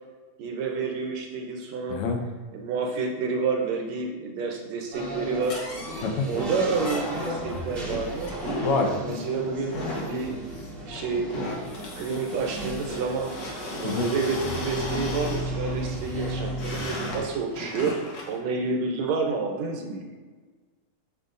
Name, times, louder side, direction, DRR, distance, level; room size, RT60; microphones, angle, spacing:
voice 1, 0.4-2.0 2.5-5.6 6.2-8.3 8.9-10.4 10.8-11.3 11.8-17.9 18.3-20.1, right 4 dB, 70° right, 1 dB, 1.9 m, -29 dB
sound 1, 4.9-17.3, right 1 dB, 35° right, 1.0 m, -35 dB
sound 2, 5.4-18.4, left 1 dB, 50° left, 1.4 m, -36 dB
voice 2, 8.6-9.2 13.8-14.1, left 4 dB, 75° left, 3 dB, 2.2 m, -26 dB
9.3 x 6.7 x 2.6 m, 1.4 s
omnidirectional pair, 3.4 m